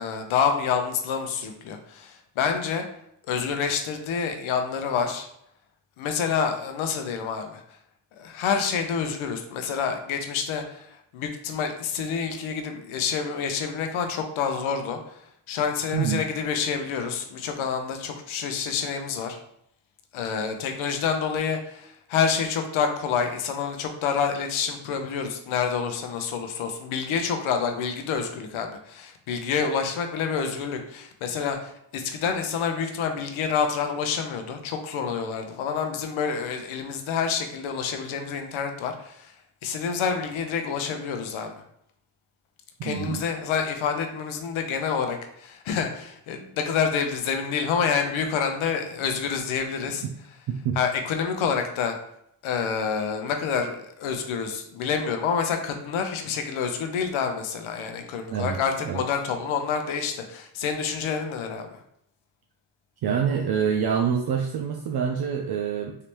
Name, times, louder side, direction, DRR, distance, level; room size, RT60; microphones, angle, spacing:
voice 1, 0.0-2.8 3.3-5.3 6.0-7.6 8.2-15.0 15.5-19.4 20.1-39.3 39.6-41.5 42.8-50.0 50.8-52.0 52.4-61.7, left 6 dB, 75° left, 5 dB, 0.7 m, -28 dB
voice 2, 15.9-16.2 42.8-43.2 50.5-50.8 58.3-58.6 58.8-59.0 63.0-66.0, right 7 dB, 55° right, 1 dB, 0.5 m, -26 dB
3.3 x 2.8 x 3.0 m, 0.73 s
cardioid pair, 75°, 49 cm